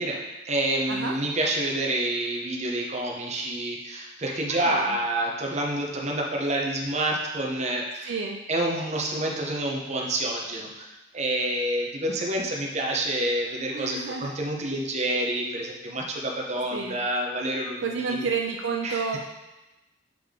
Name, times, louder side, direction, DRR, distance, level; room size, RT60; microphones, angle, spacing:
voice 1, 0.0-8.1 8.5-18.3 18.8-19.0, right 1 dB, 35° right, 0 dB, 0.8 m, -28 dB
voice 2, 4.5-4.9 8.0-8.4 13.7-14.4 16.7-17.0 17.8-19.2, right 5 dB, 65° right, 1 dB, 0.4 m, -30 dB
7.6 x 3.6 x 3.7 m, 1.0 s
head